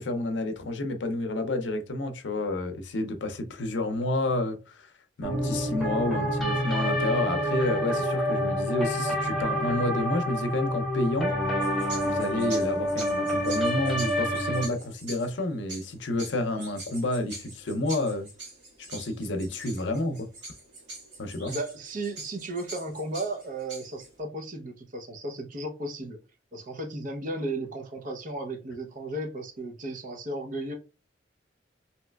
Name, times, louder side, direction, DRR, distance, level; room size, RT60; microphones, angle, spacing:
voice 1, 0.0-4.9 5.2-11.3 12.0-18.3 18.9-20.3 21.2-21.5, left 2 dB, 70° left, 0.5 m, -30 dB
sound 1, 5.2-14.7, equal, ahead, 0.9 m, -28 dB
sound 2, 11.6-24.2, right 2 dB, 65° right, 1.7 m, -44 dB
voice 2, 21.5-26.2 26.5-30.7, right 2 dB, 45° right, 0.6 m, -35 dB
3.1 x 2.8 x 2.2 m
head